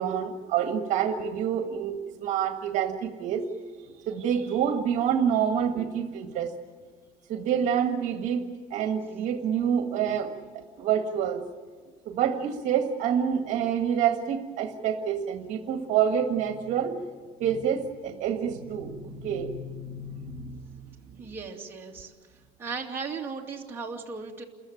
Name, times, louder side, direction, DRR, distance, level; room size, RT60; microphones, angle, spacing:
voice 1, 0.0-3.5 3.9-6.5 7.3-10.3 10.8-11.4 12.0-17.0 17.4-20.8, right 8 dB, 55° right, 6 dB, 1.7 m, -27 dB
voice 2, 21.2-22.1 22.6-24.4, right 5 dB, 15° right, -2 dB, 2.6 m, -36 dB
28.0 x 15.0 x 9.1 m, 1.5 s
cardioid pair, 160°, 15 cm